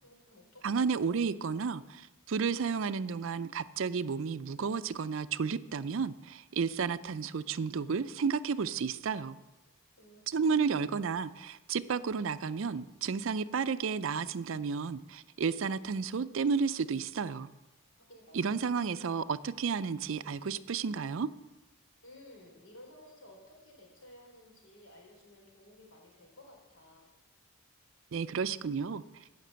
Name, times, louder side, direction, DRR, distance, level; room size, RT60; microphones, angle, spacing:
voice 1, 0.0-1.3 10.0-11.0 18.0-18.4 22.0-27.1, left 1 dB, 70° left, -1 dB, 4.0 m, -56 dB
voice 2, 0.6-9.4 10.3-17.5 18.3-21.3 28.1-29.0, right 5 dB, 65° right, 14 dB, 0.4 m, -32 dB
16.0 x 5.9 x 7.5 m, 1.1 s
head